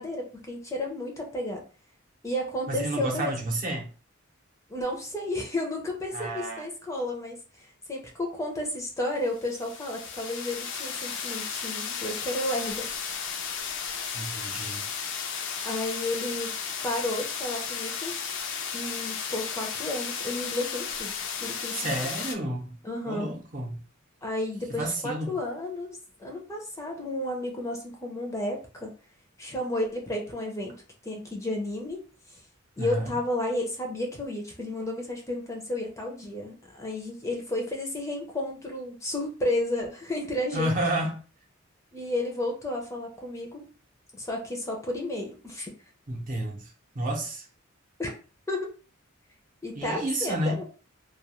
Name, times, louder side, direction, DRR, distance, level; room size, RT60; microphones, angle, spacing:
voice 1, 0.0-1.6 2.2-3.4 4.7-13.4 15.6-16.5 16.8-18.2 18.7-21.9 22.8-23.3 24.2-28.9 29.4-30.8 31.0-32.0 32.3-32.4 32.8-40.7 41.9-43.6 44.1-45.7 48.0-48.1 48.5-48.7 49.6-50.6, left 1 dB, 15° left, 0.5 m, -32 dB
voice 2, 2.7-3.9 6.1-6.6 14.1-14.9 21.7-22.8 23.1-23.8 24.8-25.3 32.8-33.1 40.5-41.2 46.1-46.7 46.9-47.5 49.8-50.6, right 1 dB, 40° right, 0.7 m, -30 dB
Waterfall in La Palma island (Bosque de Los Tilos), 9.3-22.4, left 6 dB, 65° left, 0.4 m, -34 dB
2.3 x 2.2 x 2.9 m
head